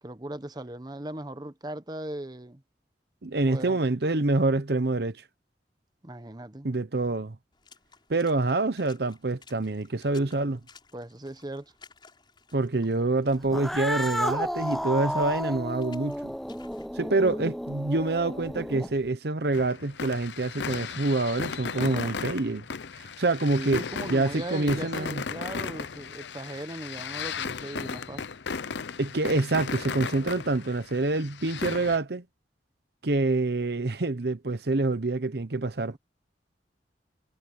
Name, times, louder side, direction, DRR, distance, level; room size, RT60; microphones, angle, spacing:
voice 1, 0.0-2.6 3.4-3.8 6.0-6.7 10.9-11.7 21.7-22.1 23.5-28.3 35.9-36.0, right 1 dB, 25° right, 1.1 m, -38 dB
voice 2, 3.2-5.2 6.6-7.4 8.1-10.6 12.5-16.3 16.9-22.6 23.0-23.8 24.1-25.2 29.0-32.2 33.0-36.0, right 2 dB, 60° right, 0.9 m, -26 dB
Water / Splash splatter, 7.5-16.9, left 5 dB, 25° left, 5.6 m, -57 dB
Cat, 13.4-19.1, equal, ahead, 0.4 m, -32 dB
sound 1, 19.5-32.0, left 5 dB, 80° left, 0.7 m, -36 dB
head